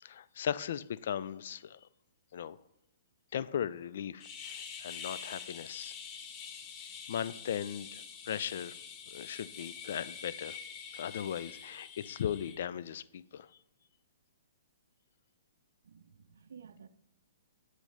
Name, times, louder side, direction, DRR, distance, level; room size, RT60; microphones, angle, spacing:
voice 1, 0.0-1.9 2.3-2.6 3.3-5.9 7.1-8.7 9.1-10.6 10.9-13.5, left 9 dB, 60° left, 0.3 m, -38 dB
sound 1, 4.2-12.6, left 7 dB, 30° left, 0.7 m, -46 dB
voice 2, 15.8-16.9, right 6 dB, 70° right, 0.5 m, -53 dB
8.3 x 3.2 x 5.1 m
hypercardioid pair, 130°, 0 cm